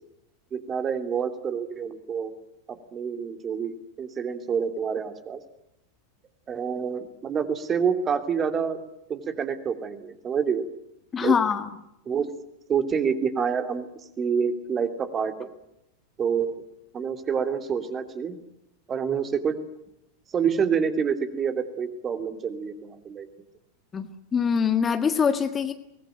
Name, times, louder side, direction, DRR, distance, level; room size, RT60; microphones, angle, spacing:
voice 1, 0.5-2.3 2.7-5.4 6.5-8.8 9.1-10.6 11.2-11.4 12.1-12.3 12.7-13.9 14.2-15.5 16.2-16.6 16.9-18.4 18.9-19.5 20.3-23.3, right 6 dB, 25° right, 8 dB, 2.9 m, -27 dB
voice 2, 11.1-11.6 23.9-24.1 24.3-25.7, left 6 dB, 20° left, 8 dB, 1.7 m, -23 dB
24.5 x 19.5 x 9.3 m, 0.83 s
figure-of-eight pair, 90°, 0 cm